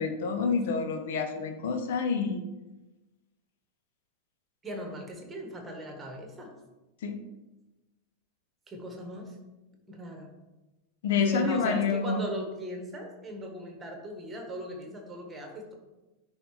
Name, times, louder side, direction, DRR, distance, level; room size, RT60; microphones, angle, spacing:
voice 1, 0.0-2.4 7.0-7.2 11.0-12.2, left 5 dB, 55° left, 7 dB, 0.8 m, -28 dB
voice 2, 4.6-6.5 8.7-9.3 9.9-10.3 11.1-15.7, right 1 dB, 15° right, 3 dB, 1.6 m, -38 dB
10.0 x 4.0 x 3.3 m, 1.1 s
figure-of-eight pair, 90°, 0 cm